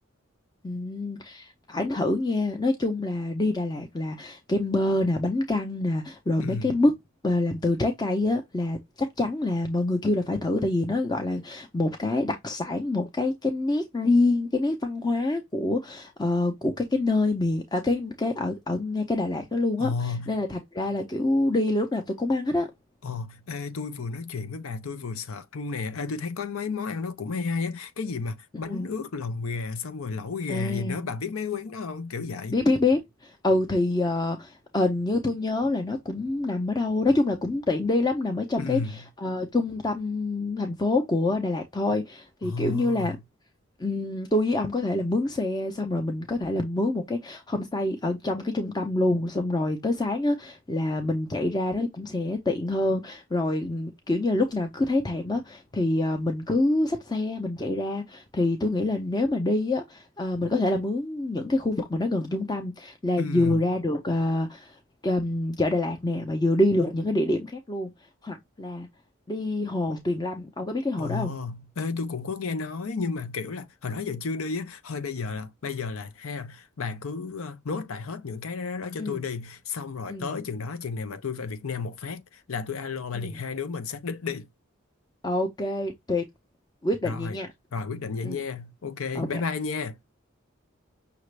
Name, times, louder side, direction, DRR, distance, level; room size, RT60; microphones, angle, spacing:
voice 1, 0.6-6.9 7.2-22.7 28.6-28.9 30.5-31.1 32.5-43.2 43.8-67.9 68.2-68.9 69.3-71.3 79.0-79.2 80.1-80.3 83.1-83.4 85.2-86.2 86.8-87.5 88.2-88.4 89.1-89.3, left 2 dB, 20° left, 0.6 m, -26 dB
voice 2, 6.4-6.8 19.8-20.4 23.0-32.6 38.6-39.0 42.4-43.2 63.2-63.7 71.0-84.5 87.0-87.4 87.7-90.0, left 4 dB, 85° left, 0.7 m, -32 dB
5.9 x 2.5 x 3.2 m
head